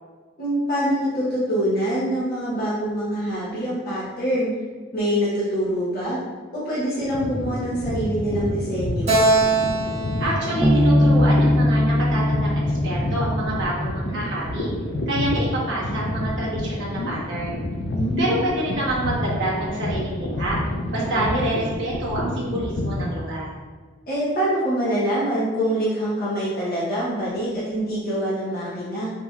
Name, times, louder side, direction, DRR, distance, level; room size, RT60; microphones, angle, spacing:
voice 1, 0.4-4.5 4.9-6.2 6.5-9.2 17.9-18.4 21.1-21.5 24.1-29.1, equal, 45° left, -9 dB, 0.9 m, -25 dB
sound 1, 7.0-23.1, left 1 dB, 60° left, 0.5 m, -28 dB
Keyboard (musical), 9.1-12.5, right 2 dB, 30° right, 0.7 m, -24 dB
voice 2, 10.2-14.7 15.1-17.6 18.2-20.6 20.9-23.5, right 1 dB, 60° right, -6 dB, 1.2 m, -27 dB
Bass guitar, 10.6-14.2, left 1 dB, 5° left, 0.4 m, -20 dB
5.2 x 2.9 x 2.3 m, 1.4 s
head